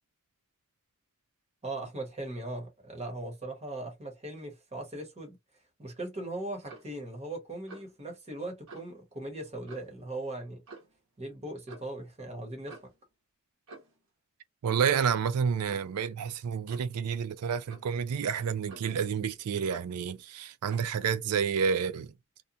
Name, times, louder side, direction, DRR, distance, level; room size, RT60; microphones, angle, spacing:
voice 1, 1.6-5.4 5.8-10.6 11.2-12.7, right 2 dB, 30° right, 1.0 m, -39 dB
Clock, 6.6-7.0 7.7-8.0 8.7-8.9 9.7-10.0 10.7-11.0 11.7-11.9 12.7-13.0 13.7-14.0 14.7-15.0 15.7-16.0 16.7-17.0 17.7-18.0 18.7-19.1 19.7-20.0 20.7-20.9, right 3 dB, 65° right, 1.0 m, -50 dB
voice 2, 14.6-22.1, right 7 dB, 90° right, 0.4 m, -29 dB
2.8 x 2.3 x 2.4 m
head